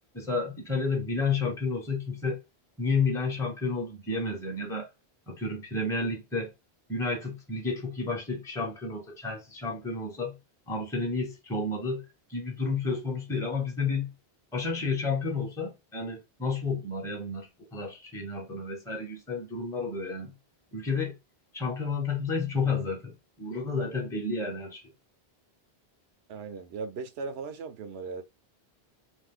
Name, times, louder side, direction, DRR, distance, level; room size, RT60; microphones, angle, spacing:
voice 1, 0.1-2.4 2.8-4.9 5.3-6.5 6.9-10.4 10.7-12.0 12.3-14.1 14.5-20.3 20.7-21.1 21.5-23.1 23.4-24.8, left 4 dB, 5° left, 0.8 m, -31 dB
voice 2, 26.3-28.2, right 4 dB, 85° right, 0.9 m, -37 dB
2.6 x 2.5 x 3.6 m
omnidirectional pair, 1.0 m